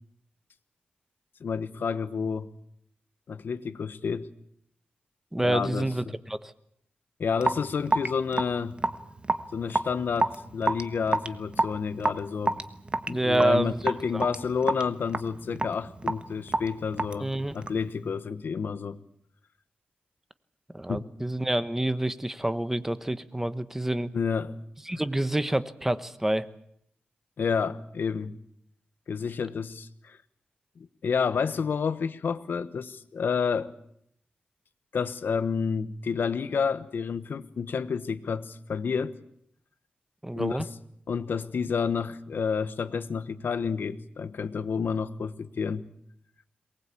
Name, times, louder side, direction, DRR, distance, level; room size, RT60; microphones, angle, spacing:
voice 1, 1.4-2.5 3.3-4.3 5.4-6.1 7.2-8.8 9.5-12.6 13.1-19.0 20.9-21.1 24.1-24.6 24.9-25.0 27.4-28.4 29.1-30.2 30.8-33.7 34.9-39.2 40.3-40.7 41.1-45.8, left 6 dB, 70° left, 13 dB, 1.2 m, -30 dB
voice 2, 5.3-6.5 13.1-13.8 14.1-14.2 17.2-17.6 20.7-24.1 24.9-26.5 40.2-40.6, right 1 dB, 10° right, 13 dB, 1.1 m, -27 dB
Raindrop / Drip, 7.4-17.9, right 2 dB, 30° right, 1.3 m, -30 dB
23.0 x 19.5 x 8.5 m, 0.72 s
wide cardioid pair, 95°, 3 cm